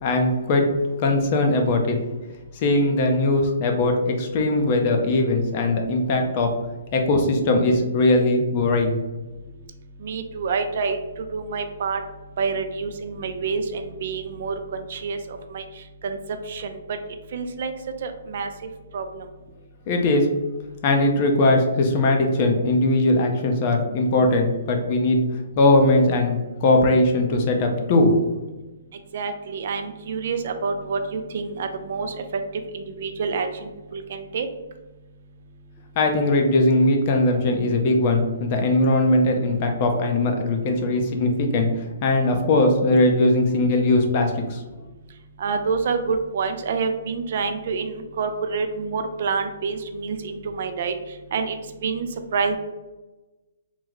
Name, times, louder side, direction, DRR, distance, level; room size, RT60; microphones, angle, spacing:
voice 1, 0.0-0.6 1.0-2.0 2.5-6.5 6.9-9.0 19.9-20.3 20.8-25.2 25.6-28.1 36.0-41.7 42.0-44.6, left 2 dB, 35° left, 3 dB, 0.5 m, -20 dB
voice 2, 10.0-11.0 11.3-12.0 12.4-15.6 16.0-16.2 16.5-16.8 17.3-17.7 18.0-18.5 18.9-19.2 29.1-32.4 32.7-34.5 45.4-50.9 51.3-52.6, right 5 dB, 55° right, 7 dB, 0.3 m, -27 dB
3.1 x 2.0 x 3.7 m, 1.1 s
hypercardioid pair, 160°, 0 cm